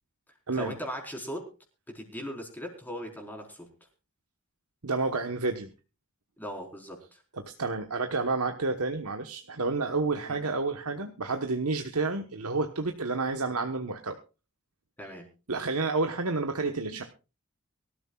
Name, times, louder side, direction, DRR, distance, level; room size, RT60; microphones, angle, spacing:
voice 1, 0.5-1.5 1.9-3.7 6.4-7.2 10.3-10.4 15.0-15.3, equal, 10° left, 1 dB, 4.4 m, -39 dB
voice 2, 4.8-5.7 7.4-14.2 15.5-17.0, right 3 dB, 85° right, 5 dB, 1.3 m, -30 dB
23.5 x 13.5 x 2.4 m, 0.32 s
head